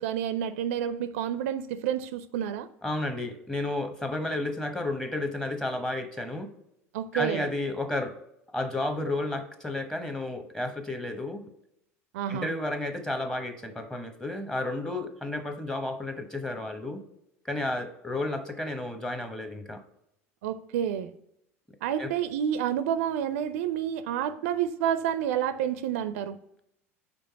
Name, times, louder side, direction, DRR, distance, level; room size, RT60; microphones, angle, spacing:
voice 1, 0.0-2.7 6.9-7.5 12.1-12.5 20.4-21.1 21.8-26.4, right 9 dB, 70° right, 13 dB, 0.4 m, -29 dB
voice 2, 2.8-6.5 7.1-8.2 8.5-11.5 12.3-17.0 17.4-19.8 22.0-22.1, left 2 dB, 10° left, 6 dB, 1.0 m, -32 dB
5.2 x 4.3 x 4.6 m, 0.78 s
hypercardioid pair, 75°, 8 cm